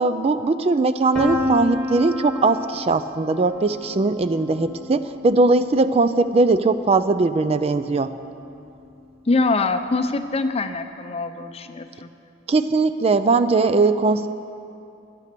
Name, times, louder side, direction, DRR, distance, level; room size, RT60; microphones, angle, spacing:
voice 1, 0.0-8.1 12.5-14.3, right 3 dB, 30° right, 12 dB, 0.3 m, -20 dB
Piano, 1.1-6.9, left 2 dB, 5° left, 1.7 m, -30 dB
voice 2, 9.3-12.1, left 3 dB, 30° left, 9 dB, 0.5 m, -24 dB
12.5 x 10.5 x 6.7 m, 2.6 s
head